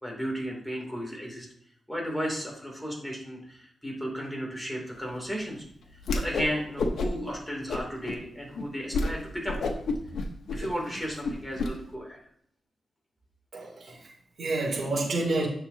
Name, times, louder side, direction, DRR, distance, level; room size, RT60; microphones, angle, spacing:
voice 1, 0.0-1.5 1.9-5.6 6.1-9.6 10.5-12.2, equal, ahead, -2 dB, 2.8 m, -34 dB
Whoosh swoosh swish, 6.0-6.5 6.8-7.3 7.7-8.2 8.6-8.7 8.9-9.1 9.4-11.7, left 3 dB, 90° left, 1.0 m, -29 dB
voice 2, 13.5-15.5, right 2 dB, 65° right, -1 dB, 2.9 m, -29 dB
10.0 x 6.8 x 2.8 m, 0.70 s
wide cardioid pair, 95°, 0 cm